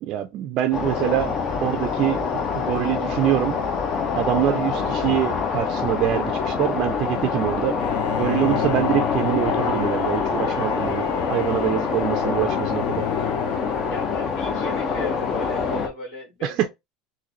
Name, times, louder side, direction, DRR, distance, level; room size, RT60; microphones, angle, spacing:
voice 1, 0.0-3.6 4.1-7.7 8.1-11.0 11.3-13.0 16.4-16.6, right 13 dB, 50° right, 0.4 m, -24 dB
sound 1, 0.7-15.9, left 5 dB, 40° left, 0.9 m, -25 dB
Bowed string instrument, 7.8-14.6, left 11 dB, 80° left, 0.5 m, -32 dB
voice 2, 13.9-16.7, left 1 dB, 65° left, 1.8 m, -35 dB
3.9 x 2.6 x 3.0 m
supercardioid pair, 135°, 0 cm